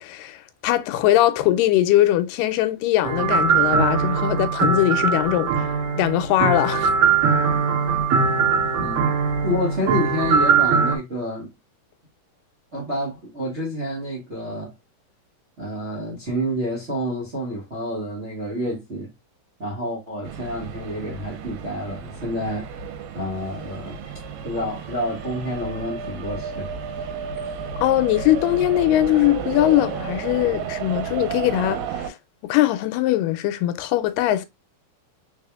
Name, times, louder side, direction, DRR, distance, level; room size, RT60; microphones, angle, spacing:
voice 1, 0.0-5.7 6.0-6.9 27.8-32.2 32.4-34.5, left 14 dB, 85° left, 2.2 m, -21 dB
sound 1, 3.0-11.0, right 5 dB, 70° right, 2.6 m, -21 dB
voice 2, 8.8-11.5 12.7-14.7 15.6-19.1 19.6-22.7 23.1-24.0 24.4-26.7, equal, 45° right, 0.8 m, -28 dB
sound 2, 20.2-32.1, right 7 dB, 90° right, 2.5 m, -32 dB
4.9 x 4.0 x 2.3 m
omnidirectional pair, 3.8 m